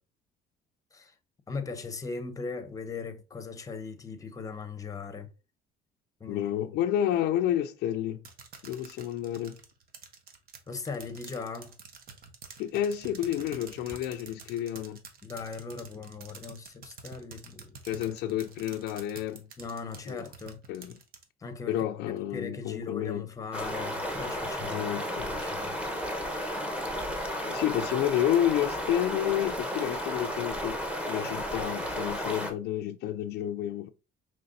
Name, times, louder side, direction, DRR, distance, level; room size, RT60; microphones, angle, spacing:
voice 1, 1.5-5.3 6.2-6.5 10.7-11.7 15.2-17.8 19.6-20.6 21.4-21.8 22.1-25.8, left 4 dB, 20° left, 0.7 m, -39 dB
voice 2, 6.3-8.2 8.6-9.6 12.6-15.0 17.8-19.4 20.1-20.2 20.7-21.0 21.7-23.3 24.6-25.3 27.4-30.8 31.1-33.9, left 11 dB, 75° left, 0.4 m, -30 dB
sound 1, 8.2-21.2, right 5 dB, 60° right, 0.9 m, -48 dB
sound 2, 23.5-32.5, equal, 5° right, 1.0 m, -33 dB
5.1 x 3.1 x 2.6 m
cardioid pair, 110°, 17 cm